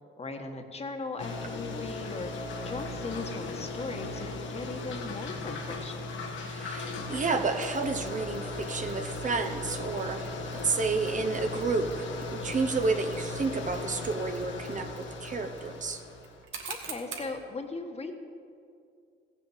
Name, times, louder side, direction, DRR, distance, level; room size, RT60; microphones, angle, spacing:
voice 1, 0.2-6.1 16.7-18.1, left 3 dB, 30° left, 4 dB, 1.4 m, -38 dB
sound 1, 1.2-16.4, left 2 dB, 70° left, 1.5 m, -37 dB
voice 2, 6.4-16.0, right 4 dB, 40° right, 6 dB, 0.9 m, -31 dB
Mechanisms, 7.6-17.4, right 6 dB, 75° right, 1.8 m, -49 dB
15.5 x 7.2 x 7.3 m, 2.4 s
cardioid pair, 90°, 20 cm